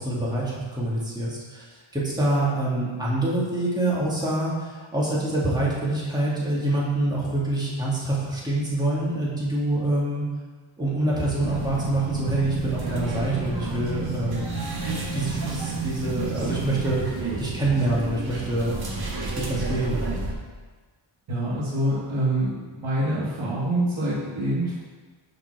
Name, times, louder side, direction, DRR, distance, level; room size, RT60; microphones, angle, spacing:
voice 1, 0.0-1.7 1.9-10.3 10.8-14.6 15.1-18.7 19.3-20.0, right 1 dB, 10° right, -7 dB, 2.1 m, -26 dB
sound 1, 11.4-20.3, right 3 dB, 50° right, 1.4 m, -31 dB
voice 2, 21.3-24.8, right 1 dB, 70° right, -7 dB, 1.8 m, -26 dB
5.8 x 5.2 x 6.2 m, 1.4 s
wide cardioid pair, 95°, 49 cm